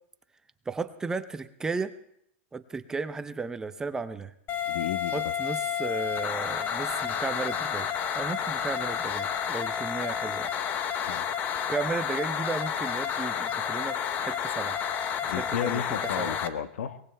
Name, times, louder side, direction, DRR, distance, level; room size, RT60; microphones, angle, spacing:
voice 1, 0.7-1.9 2.5-4.3 5.1-7.9 8.1-10.5 11.7-14.8 15.2-15.9 16.2-16.4, right 4 dB, 10° right, 11 dB, 0.5 m, -34 dB
sound 1, 4.5-16.5, left 8 dB, 25° left, 0.8 m, -30 dB
voice 2, 4.7-5.3 11.0-11.2 15.3-17.0, left 9 dB, 80° left, 10 dB, 1.2 m, -33 dB
22.5 x 19.0 x 3.3 m, 0.73 s
supercardioid pair, 155°, 7 cm